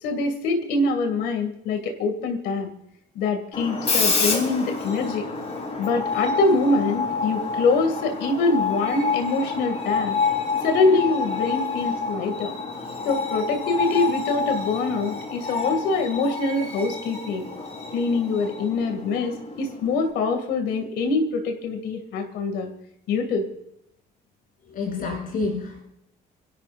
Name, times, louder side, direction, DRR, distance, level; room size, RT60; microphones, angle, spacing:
voice 1, 0.0-2.7 3.2-5.3 5.8-10.2 10.6-12.5 13.0-17.5 17.9-22.7 23.1-23.4, left 3 dB, 90° left, 5 dB, 2.5 m, -24 dB
Screech, 3.5-20.1, left 4 dB, 40° left, 4.0 m, -28 dB
voice 2, 24.7-25.8, left 3 dB, 55° left, 0 dB, 7.4 m, -28 dB
29.0 x 12.0 x 2.6 m, 0.81 s
cardioid pair, 110°, 17 cm